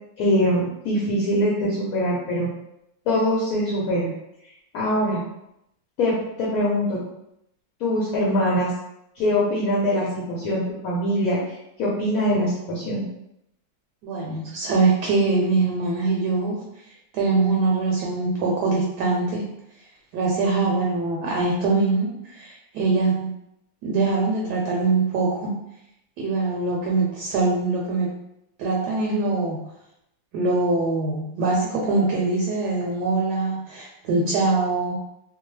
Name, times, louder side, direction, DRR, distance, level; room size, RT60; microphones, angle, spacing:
voice 1, 0.2-2.5 3.1-4.1 4.7-5.2 6.0-6.1 6.4-7.0 7.8-8.7 9.1-11.4 11.8-13.0, equal, 65° left, -5 dB, 1.0 m, -23 dB
voice 2, 14.0-16.6 17.1-19.5 20.1-23.3 23.8-25.5 26.2-28.1 28.6-29.6 30.3-34.9, right 3 dB, 75° right, -2 dB, 1.1 m, -23 dB
2.9 x 2.0 x 3.1 m, 0.81 s
omnidirectional pair, 1.9 m